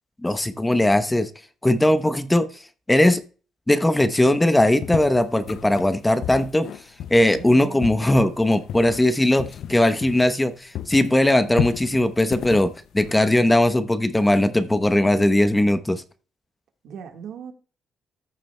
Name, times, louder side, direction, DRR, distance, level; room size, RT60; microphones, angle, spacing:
voice 1, 0.2-1.3 1.6-2.5 2.9-3.2 3.7-6.7 7.1-16.0, left 1 dB, 10° left, 0.8 m, -19 dB
sound 1, 4.8-10.5 10.7-13.6, left 9 dB, 70° left, 0.4 m, -33 dB
voice 2, 7.3-8.3 16.8-17.5, right 7 dB, 75° right, 1.5 m, -39 dB
14.0 x 7.4 x 2.2 m
cardioid pair, 90°, 0 cm